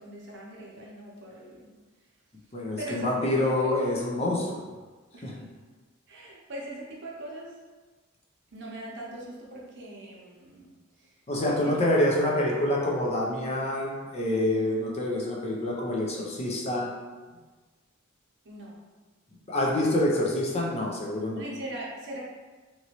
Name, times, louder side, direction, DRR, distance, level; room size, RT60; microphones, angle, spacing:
voice 1, 0.0-1.7 2.8-3.1 3.6-3.9 5.1-5.3 6.1-7.5 8.5-10.7 11.0-11.1 11.5-11.8 18.4-18.8 21.3-22.2, right 1 dB, 55° right, -4 dB, 0.7 m, -40 dB
voice 2, 2.5-4.6 5.2-5.3 11.3-16.9 19.5-21.4, left 1 dB, 30° left, -2 dB, 0.4 m, -26 dB
2.9 x 2.6 x 2.8 m, 1.3 s
head